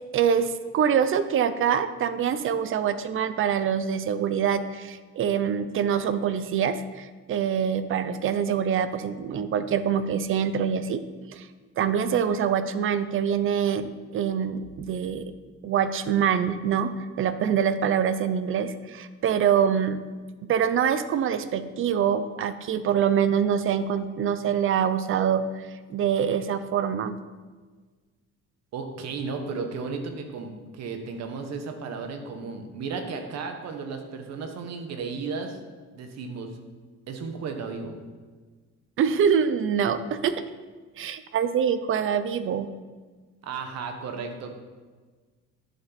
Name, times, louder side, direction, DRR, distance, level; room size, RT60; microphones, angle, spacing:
voice 1, 0.1-11.0 11.3-11.5 11.8-15.3 15.6-20.0 20.5-25.4 25.9-27.2 39.0-40.4 41.0-42.7, right 8 dB, 45° right, 12 dB, 0.6 m, -25 dB
voice 2, 28.7-35.6 35.9-36.5 37.1-37.9 43.4-44.6, right 4 dB, 60° right, 5 dB, 1.4 m, -34 dB
11.0 x 7.3 x 4.1 m, 1.4 s
cardioid pair, 135°, 29 cm